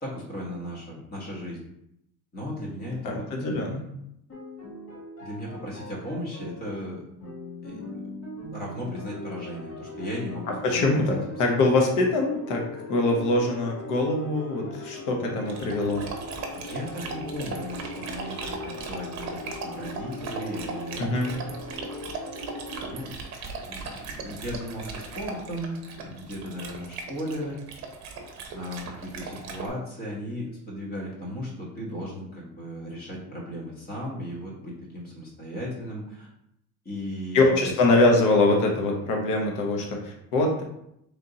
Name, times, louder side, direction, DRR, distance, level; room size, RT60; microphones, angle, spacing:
voice 1, 0.0-1.6 2.3-3.8 5.2-7.0 7.6-7.8 8.5-10.9 16.5-21.6 21.9-22.1 22.7-23.1 23.7-27.6 28.5-36.3 36.8-37.7, equal, 30° left, -3 dB, 1.4 m, -36 dB
voice 2, 3.0-3.8 10.5-12.6 12.9-16.1 21.0-21.3 37.3-40.6, left 2 dB, 65° left, 1 dB, 1.0 m, -23 dB
sound 1, 4.3-22.9, left 1 dB, 45° left, 1.5 m, -40 dB
Dog, 15.5-29.7, right 4 dB, 50° right, 0.8 m, -38 dB
3.4 x 2.8 x 3.9 m, 0.78 s
cardioid pair, 145°, 34 cm